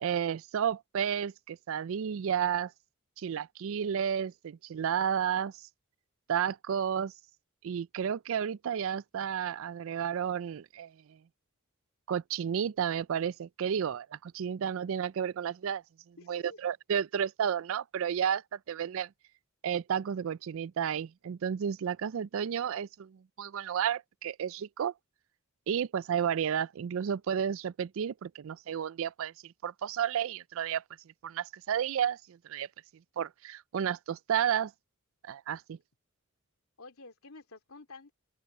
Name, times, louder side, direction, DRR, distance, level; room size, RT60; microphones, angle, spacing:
voice 1, 0.0-2.7 3.2-5.5 6.3-7.1 7.6-11.2 12.1-19.1 19.6-24.9 25.7-30.8 31.2-32.7 33.2-34.7 35.2-35.8, right 8 dB, 65° right, 0.4 m, -32 dB
voice 2, 16.2-16.6 36.8-38.1, left 3 dB, 80° left, 2.9 m, -50 dB
open air
head